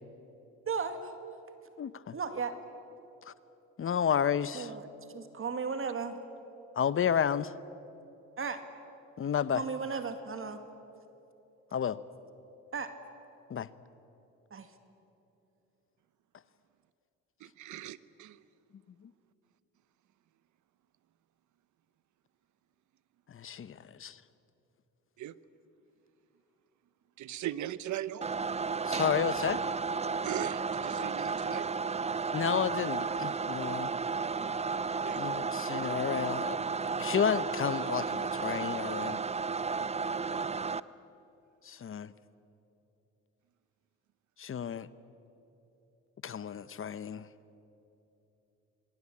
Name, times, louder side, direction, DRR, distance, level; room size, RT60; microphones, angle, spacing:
voice 1, 0.7-1.1 2.1-2.6 4.5-6.2 8.4-8.6 9.5-10.6 12.7-12.9 14.5-14.7, right 5 dB, 45° right, 8 dB, 2.2 m, -35 dB
voice 2, 1.8-2.2 3.2-3.3 3.8-4.7 6.7-7.5 9.2-9.6 11.7-12.0 13.5-13.7 19.0-19.1 23.3-24.2 28.8-29.6 32.3-33.9 35.1-39.2 41.6-42.1 44.4-44.9 46.2-47.3, left 8 dB, 45° left, 16 dB, 0.9 m, -31 dB
voice 3, 17.4-18.4 25.2-25.3 27.2-28.3 30.2-31.7 35.0-35.2 40.2-40.6, right 12 dB, 75° right, 17 dB, 0.9 m, -39 dB
sound 1, 28.2-40.8, right 5 dB, 20° right, 0.6 m, -33 dB
27.0 x 22.5 x 8.6 m, 3.0 s
cardioid pair, 90°, 30 cm